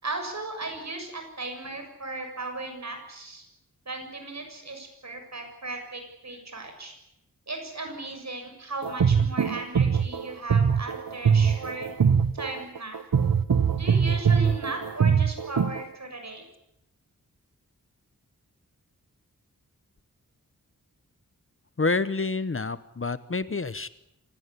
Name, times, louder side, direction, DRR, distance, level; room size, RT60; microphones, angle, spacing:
voice 1, 0.0-3.4 3.8-6.9 7.5-11.9 12.3-13.0 13.7-16.4, right 2 dB, 50° right, 5 dB, 6.9 m, -36 dB
sound 1, 8.8-15.8, right 6 dB, 85° right, 1.2 m, -22 dB
voice 2, 21.8-23.9, left 3 dB, 40° left, 15 dB, 1.0 m, -28 dB
26.5 x 17.5 x 9.8 m, 0.82 s
wide cardioid pair, 100°, 34 cm